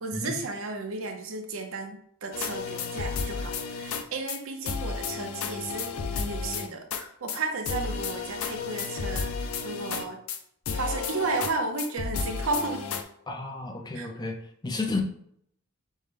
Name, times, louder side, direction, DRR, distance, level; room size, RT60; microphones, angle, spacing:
voice 1, 0.0-10.2 10.7-12.9 13.9-14.1, right 3 dB, 65° right, 3 dB, 0.6 m, -33 dB
sound 1, 2.3-4.0 4.3-4.4 4.7-7.0 7.3-7.4 7.7-10.4 10.7-11.5 11.8-13.0, left 5 dB, 75° left, 0.5 m, -32 dB
voice 2, 13.3-14.4 14.6-15.0, left 3 dB, 20° left, 2 dB, 0.5 m, -31 dB
5.4 x 2.1 x 3.3 m, 0.69 s
head